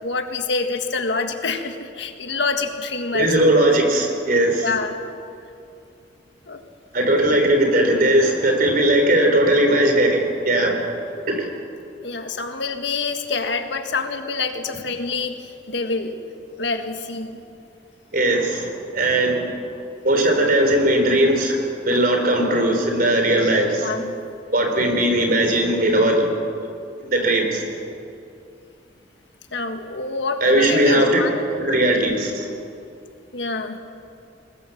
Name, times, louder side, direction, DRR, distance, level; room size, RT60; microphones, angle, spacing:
voice 1, 0.0-3.4 4.6-5.0 6.5-6.6 12.0-16.2 16.6-17.4 23.8-24.2 29.5-31.4 33.3-33.8, left 4 dB, 70° left, 6 dB, 1.7 m, -26 dB
voice 2, 3.1-4.7 6.9-10.8 11.3-11.5 18.1-19.5 20.0-23.9 24.5-26.3 26.6-26.7 27.0-27.6 30.4-31.2 31.6-32.5, right 1 dB, 50° right, 3 dB, 3.8 m, -18 dB
23.0 x 19.5 x 7.2 m, 2.5 s
head